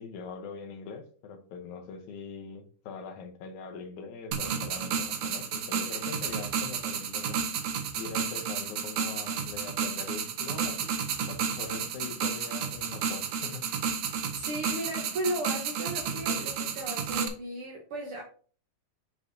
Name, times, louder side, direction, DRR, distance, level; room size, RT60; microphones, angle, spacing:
voice 1, 0.0-7.4 8.0-10.9 11.3-13.7, left 5 dB, 75° left, 2.3 m, -42 dB
sound 1, 4.3-17.3, right 7 dB, 80° right, 2.4 m, -32 dB
voice 2, 14.3-18.2, right 1 dB, 65° right, 1.5 m, -35 dB
7.2 x 6.4 x 2.7 m
omnidirectional pair, 3.5 m